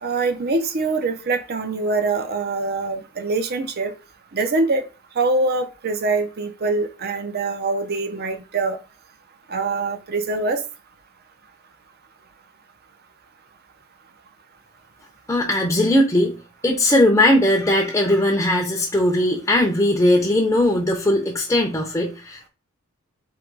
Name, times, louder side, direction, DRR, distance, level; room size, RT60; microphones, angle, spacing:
voice 1, 0.0-3.9 4.3-4.8 5.2-8.8 9.5-10.6, right 3 dB, 50° right, 8 dB, 0.7 m, -24 dB
voice 2, 15.3-16.3 16.6-22.5, left 1 dB, 15° left, 0 dB, 0.7 m, -19 dB
3.9 x 2.9 x 4.6 m, 0.32 s
head